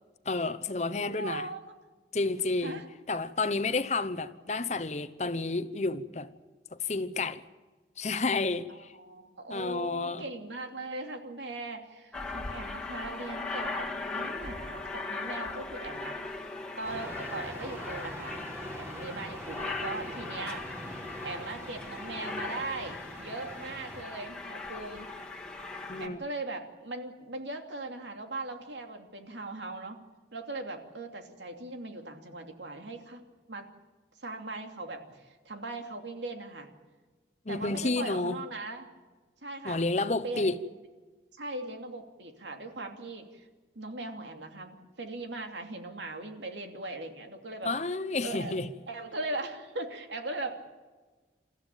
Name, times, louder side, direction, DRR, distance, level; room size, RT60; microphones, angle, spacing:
voice 1, 0.2-1.5 2.1-2.8 3.1-6.3 6.7-7.4 8.0-8.9 9.5-10.2 25.9-26.2 37.5-38.4 39.6-40.6 47.6-48.7, left 3 dB, 40° left, 0.9 m, -30 dB
voice 2, 1.0-1.7 2.6-2.8 8.7-16.4 16.8-18.4 18.7-20.6 21.2-25.1 26.0-30.0 30.3-33.2 33.5-33.7 34.2-36.7 37.5-38.9 39.4-39.8 40.2-40.5 41.4-43.5 43.7-47.7 48.2-48.5 48.9-50.6, right 2 dB, 85° right, 2.8 m, -39 dB
Aircraft, 12.1-26.1, left 3 dB, 5° left, 2.1 m, -39 dB
sound 1, 16.8-24.0, right 1 dB, 15° right, 1.7 m, -44 dB
28.5 x 14.5 x 9.1 m
head